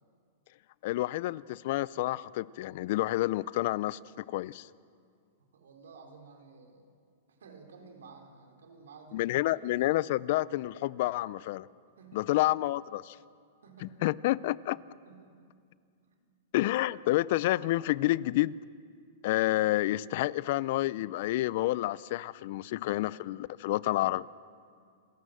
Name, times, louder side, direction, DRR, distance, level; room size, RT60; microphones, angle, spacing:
voice 1, 0.8-4.7 9.1-11.7 12.1-13.2 13.8-14.8 16.5-18.5 19.2-24.3, left 16 dB, 55° left, 21 dB, 0.4 m, -29 dB
voice 2, 5.5-6.9 7.3-9.6 12.0-12.3 13.6-14.0 15.0-15.4 16.1-16.3, right 5 dB, 90° right, 3 dB, 3.4 m, -53 dB
27.5 x 14.5 x 7.7 m, 2.3 s
hypercardioid pair, 140°, 0 cm